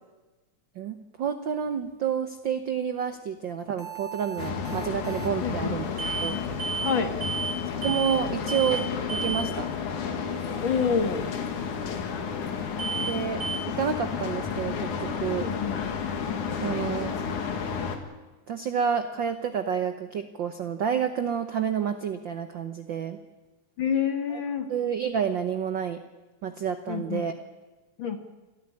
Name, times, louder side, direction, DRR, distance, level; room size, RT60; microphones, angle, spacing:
voice 1, 0.8-5.8 6.2-6.4 7.8-9.7 13.0-15.4 16.6-17.1 18.5-23.2 24.3-24.4 24.7-26.0 26.4-27.4, right 7 dB, 70° right, 8 dB, 1.1 m, -29 dB
sound 1, 3.8-5.4 6.0-6.3 6.6-7.0 7.2-7.6 7.8-8.2 8.5-8.8 9.1-9.5 12.8-13.1 13.4-13.6, right 5 dB, 25° right, 2.2 m, -32 dB
sound 2, 4.4-18.0, left 6 dB, 75° left, 3.4 m, -32 dB
voice 2, 5.4-5.8 6.8-7.2 10.6-11.3 15.4-15.9 23.8-24.7 26.9-27.3 28.0-28.2, left 6 dB, 45° left, 6 dB, 1.9 m, -27 dB
26.5 x 14.0 x 9.8 m, 1.2 s
omnidirectional pair, 3.5 m